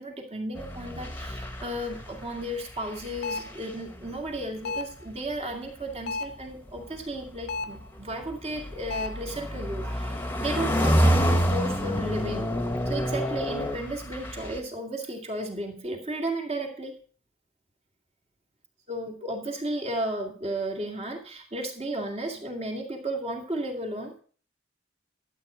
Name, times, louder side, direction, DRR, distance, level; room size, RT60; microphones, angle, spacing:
voice 1, 0.0-12.5 12.9-16.9 18.9-24.2, right 1 dB, 30° right, 2 dB, 2.4 m, -34 dB
sound 1, 0.6-2.5 2.8-4.0 5.1-5.3 7.4-14.6, equal, 10° left, 1.4 m, -27 dB
sound 2, 3.2-3.6 4.6-5.0 6.1-6.5 7.5-7.8 8.9-9.3, left 3 dB, 50° left, 0.5 m, -33 dB
12.5 x 8.2 x 5.1 m, 0.43 s
head